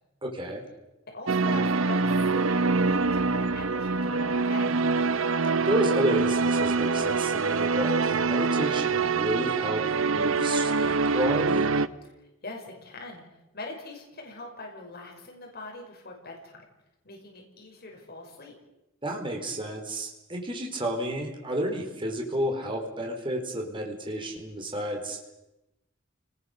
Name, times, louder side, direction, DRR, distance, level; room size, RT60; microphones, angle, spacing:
voice 1, 0.2-0.6 5.6-11.7 19.0-25.2, right 1 dB, 25° right, 1 dB, 4.4 m, -31 dB
voice 2, 1.1-4.8 12.0-16.6 17.0-18.5, left 2 dB, 50° left, 0 dB, 5.9 m, -43 dB
sound 1, 1.3-11.9, right 4 dB, 85° right, 0.9 m, -25 dB
30.0 x 20.5 x 6.7 m, 0.94 s
head